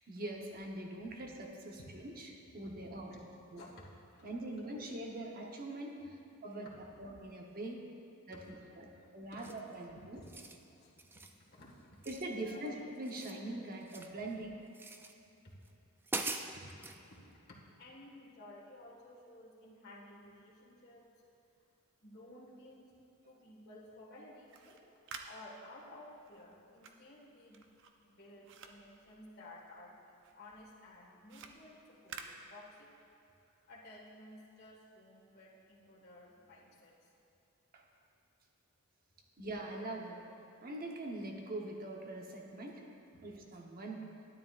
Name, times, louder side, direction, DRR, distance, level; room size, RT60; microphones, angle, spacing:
voice 1, 0.1-2.3 2.5-3.2 3.5-3.6 4.2-6.0 6.4-6.7 7.0-7.8 8.3-8.4 8.8-10.2 12.1-14.6 37.7-37.8 39.4-40.2 40.6-42.8 43.2-44.1, right 1 dB, 45° right, 0 dB, 1.0 m, -43 dB
voice 2, 3.5-4.4 4.6-4.8 5.9-6.2 6.7-7.0 8.5-9.5 10.0-10.3 10.6-11.0 11.3-12.1 12.4-12.7 15.4-15.5 16.5-21.1 22.0-23.0 23.2-24.8 25.2-27.7 28.1-30.0 30.3-32.9 33.7-37.1 43.1-43.2, left 1 dB, 50° left, -5 dB, 1.7 m, -55 dB
sound 1, 9.4-9.7 10.2-10.6 11.0-11.4 12.0-12.7 13.0-14.2 14.7-15.1 15.7-15.8 16.0-17.0, right 3 dB, 10° right, 0.3 m, -42 dB
sound 2, 24.4-29.9 30.2-33.1, right 5 dB, 60° right, 0.6 m, -53 dB
12.5 x 9.7 x 2.5 m, 2.8 s
head